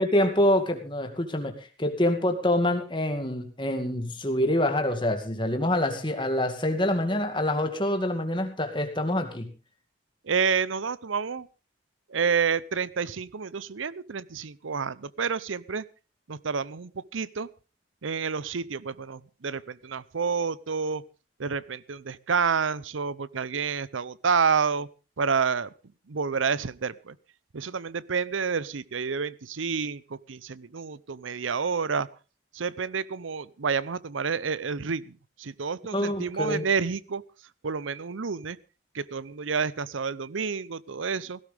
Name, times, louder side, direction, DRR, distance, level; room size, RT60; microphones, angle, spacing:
voice 1, 0.0-9.5 35.9-36.6, left 1 dB, 25° left, 6 dB, 2.2 m, -26 dB
voice 2, 10.2-11.5 12.1-15.8 16.3-17.5 18.0-21.0 21.4-24.9 25.2-25.7 26.1-27.2 27.5-32.1 32.5-37.2 37.6-38.6 38.9-41.4, right 5 dB, 90° right, 20 dB, 0.7 m, -29 dB
17.5 x 16.0 x 3.4 m, 0.33 s
head